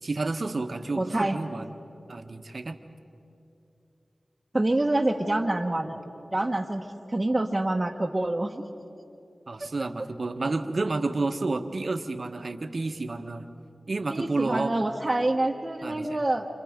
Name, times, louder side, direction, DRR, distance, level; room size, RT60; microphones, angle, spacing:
voice 1, 0.0-1.7 2.1-2.8 9.5-13.5 13.9-14.7 15.8-16.2, right 3 dB, 60° right, 6 dB, 1.4 m, -30 dB
voice 2, 1.0-1.4 4.5-6.0 6.3-8.6 9.6-9.7 14.1-16.5, right 2 dB, 30° right, -2 dB, 1.5 m, -26 dB
29.5 x 26.5 x 5.2 m, 2.7 s
cardioid pair, 45°, 0 cm